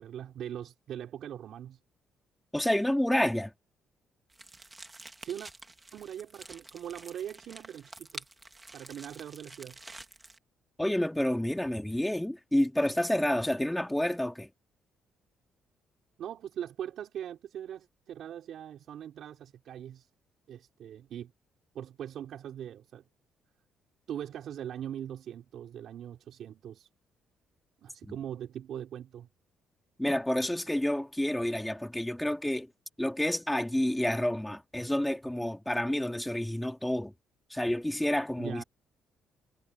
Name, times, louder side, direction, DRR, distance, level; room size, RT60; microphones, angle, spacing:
voice 1, 0.0-1.8 5.2-5.5 5.9-8.2 8.7-9.8 16.2-20.1 20.5-21.3 21.7-23.0 24.1-26.9 27.8-29.3 38.4-38.6, right 10 dB, 65° right, 4.5 m, -41 dB
voice 2, 2.5-3.5 10.8-14.5 28.1-28.2 30.0-32.7 33.0-37.1 37.5-38.6, left 1 dB, 5° left, 3.0 m, -29 dB
sound 1, 4.3-10.4, right 2 dB, 15° right, 2.2 m, -49 dB
cardioid pair, 105°, 0 cm